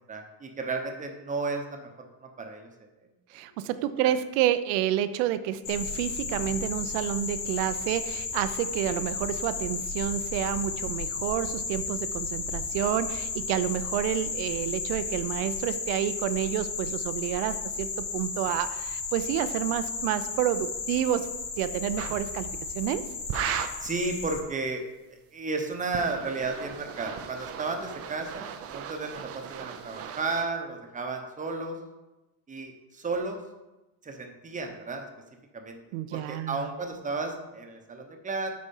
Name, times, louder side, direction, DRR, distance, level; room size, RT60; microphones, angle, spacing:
voice 1, 0.1-1.9 2.4-2.7 23.8-24.8 25.1-31.8 32.5-33.4 34.0-35.1 35.5-35.8 36.1-38.5, right 3 dB, 15° right, 4 dB, 0.8 m, -33 dB
voice 2, 3.3-21.3 21.6-22.5 22.7-23.1 35.9-36.7, right 11 dB, 90° right, 13 dB, 0.7 m, -29 dB
sound 1, 5.6-24.4, left 4 dB, 85° left, 2.9 m, -34 dB
sound 2, 22.0-22.2 23.3-23.9 25.7-30.5, right 9 dB, 35° right, 0.4 m, -37 dB
8.6 x 4.3 x 5.4 m, 1.0 s
cardioid pair, 145°, 46 cm